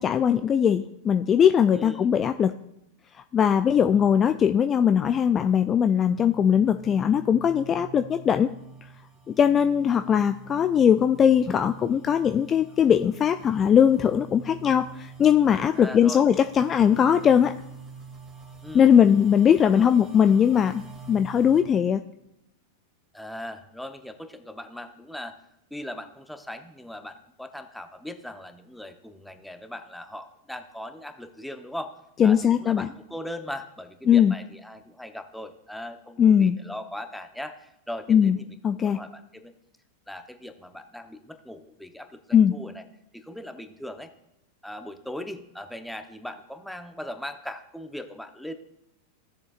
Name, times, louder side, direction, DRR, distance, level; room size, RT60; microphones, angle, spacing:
voice 1, 0.0-2.5 3.3-8.5 9.3-17.5 18.7-22.0 32.2-32.9 34.1-34.3 36.2-36.6 38.1-38.4 38.6-39.0 42.3-42.5, left 8 dB, 30° left, 9 dB, 0.4 m, -20 dB
voice 2, 1.7-2.1 15.8-16.2 18.6-18.9 19.7-19.9 23.1-25.4 25.7-32.0 32.2-38.5 38.7-39.5 40.1-42.8 43.1-44.1 44.6-48.5, left 1 dB, ahead, 7 dB, 0.9 m, -39 dB
sound 1, 3.6-21.6, right 4 dB, 30° right, 2.1 m, -47 dB
15.5 x 7.1 x 2.5 m, 0.87 s
hypercardioid pair, 95°, 0 cm